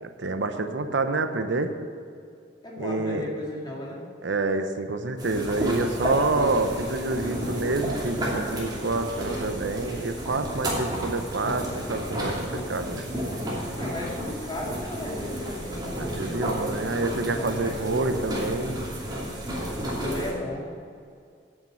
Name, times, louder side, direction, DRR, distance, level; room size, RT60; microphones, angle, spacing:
voice 1, 0.0-1.7 2.8-3.2 4.2-13.0 16.0-18.8, right 3 dB, 90° right, 7 dB, 0.8 m, -28 dB
voice 2, 2.6-4.0 13.7-16.9 17.2-17.7 20.0-20.6, left 1 dB, 25° left, -3 dB, 2.4 m, -35 dB
sound 1, 5.2-20.3, equal, 25° right, 2.9 m, -32 dB
8.9 x 7.2 x 7.8 m, 2.3 s
head